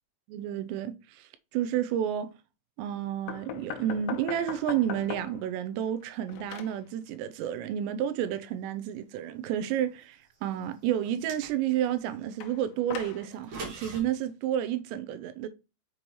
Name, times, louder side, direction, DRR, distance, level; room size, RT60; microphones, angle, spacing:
voice 1, 0.3-2.3 2.8-15.5, right 10 dB, 80° right, 2.6 m, -31 dB
sound 1, 3.3-5.5 5.9-6.8 12.4-13.3, left 11 dB, 85° left, 2.9 m, -39 dB
sound 2, 11.0-11.9 13.3-14.0, right 3 dB, 50° right, 2.9 m, -41 dB
6.7 x 5.4 x 3.1 m
omnidirectional pair, 5.2 m